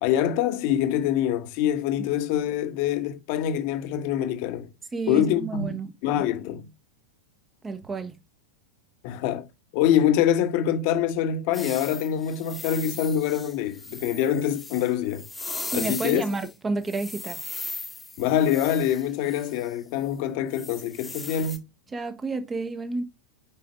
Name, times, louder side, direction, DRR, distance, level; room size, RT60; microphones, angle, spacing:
voice 1, 0.0-4.7 5.1-6.7 9.0-9.5 9.7-15.3 15.7-16.2 18.2-21.6, left 10 dB, 45° left, 1.2 m, -25 dB
voice 2, 4.9-5.9 7.6-8.1 15.7-17.4 21.9-23.0, right 3 dB, 15° right, 1.1 m, -30 dB
sound 1, 11.5-16.5 16.9-19.7 20.5-21.6, left 3 dB, 5° left, 1.3 m, -38 dB
5.7 x 4.9 x 5.1 m
figure-of-eight pair, 90°, 0 cm